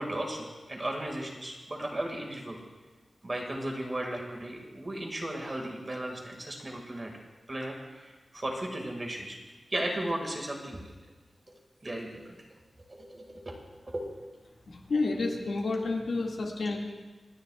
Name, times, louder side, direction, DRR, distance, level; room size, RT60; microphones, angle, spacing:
voice 1, 0.0-2.6 3.2-7.1 7.5-9.4 9.7-10.9 11.8-12.4 12.9-13.6 13.9-14.1, right 1 dB, 30° right, 1 dB, 2.0 m, -35 dB
voice 2, 14.7-16.8, left 3 dB, 75° left, -1 dB, 2.0 m, -30 dB
27.0 x 10.5 x 2.4 m, 1.2 s
wide cardioid pair, 135°, 0 cm